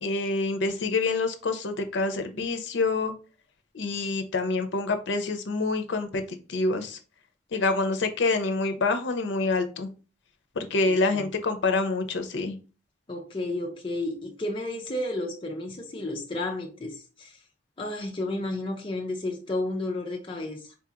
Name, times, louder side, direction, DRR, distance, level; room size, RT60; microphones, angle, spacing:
voice 1, 0.0-3.1 3.7-6.2 6.5-7.0 7.5-9.9 10.6-12.6, left 3 dB, 75° left, 0.5 m, -26 dB
voice 2, 10.9-11.3 13.1-17.4 17.8-20.7, left 2 dB, 25° left, 0.4 m, -32 dB
3.9 x 2.8 x 2.4 m
head